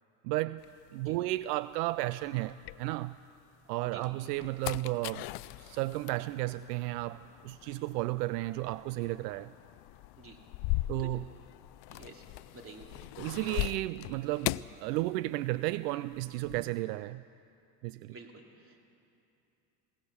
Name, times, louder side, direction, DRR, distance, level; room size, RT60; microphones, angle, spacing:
voice 1, 0.2-0.6 0.9-3.2 3.7-5.3 5.6-9.5 10.9-11.3 13.2-17.2 17.8-18.1, right 18 dB, 75° right, 16 dB, 0.6 m, -33 dB
sound 1, 0.6-3.4 3.8-15.6 15.9-16.7, left 19 dB, 55° left, 0.5 m, -40 dB
voice 2, 10.7-11.1 11.9-12.2 12.5-13.1 18.1-18.9, right 3 dB, 25° right, 2 dB, 3.0 m, -50 dB
20.5 x 18.5 x 7.0 m, 2.8 s
supercardioid pair, 100°, 48 cm